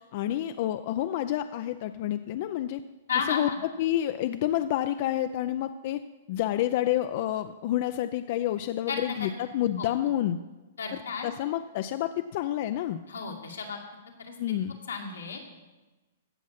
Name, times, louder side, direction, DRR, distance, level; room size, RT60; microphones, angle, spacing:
voice 1, 0.1-2.8 3.3-3.5 3.8-6.0 6.3-10.4 10.9-13.0 14.4-14.8, left 12 dB, 50° left, 10 dB, 0.5 m, -29 dB
voice 2, 3.1-3.6 8.9-9.3 9.8-9.9 10.8-11.3 13.1-13.8 14.2-14.3 14.9-15.5, left 6 dB, 90° left, 1 dB, 2.1 m, -33 dB
16.0 x 6.1 x 5.8 m, 1.1 s
hypercardioid pair, 130°, 0 cm